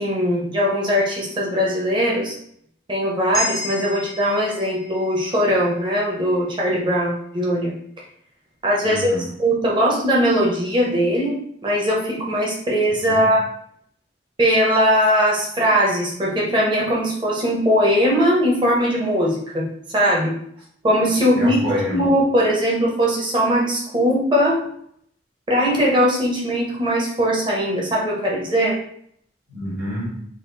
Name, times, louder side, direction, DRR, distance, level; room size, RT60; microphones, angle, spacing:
voice 1, 0.0-2.3 2.9-7.7 8.6-13.5 14.4-20.3 20.8-21.6 21.9-24.6 25.5-28.8, equal, 25° right, -3 dB, 0.8 m, -20 dB
sound 1, 3.3-7.6, left 1 dB, 20° left, 0.4 m, -33 dB
voice 2, 8.8-9.3 13.0-13.3 21.4-22.1 29.5-30.2, equal, 55° right, -6 dB, 1.4 m, -27 dB
4.2 x 2.4 x 3.9 m, 0.67 s
head